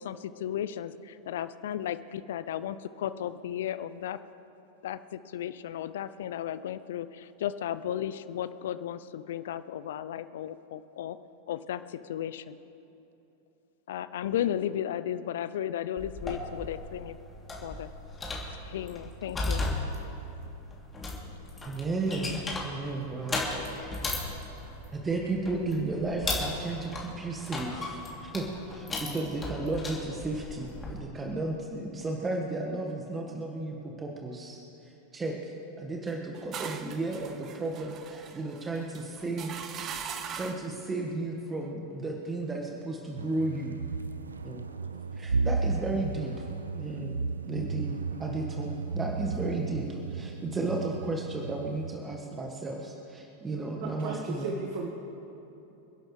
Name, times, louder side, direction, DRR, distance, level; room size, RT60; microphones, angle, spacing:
voice 1, 0.0-4.2 4.8-11.2 11.5-12.6 13.9-17.2 17.6-17.9 18.5-19.6, left 10 dB, 60° left, 14 dB, 0.5 m, -34 dB
sound 1, 16.0-31.0, left 2 dB, 15° left, 2.9 m, -36 dB
voice 2, 21.6-23.9 24.9-39.5 40.3-43.8 44.4-44.6 45.1-46.5 46.7-54.5, right 2 dB, 15° right, 0 dB, 1.5 m, -34 dB
sound 2, 36.1-40.8, right 7 dB, 35° right, 0.9 m, -41 dB
sound 3, 43.2-52.0, right 4 dB, 80° right, 0.5 m, -34 dB
voice 3, 53.8-54.9, right 4 dB, 50° right, 1 dB, 1.3 m, -35 dB
27.5 x 11.5 x 3.3 m, 3.0 s
figure-of-eight pair, 90°, 0 cm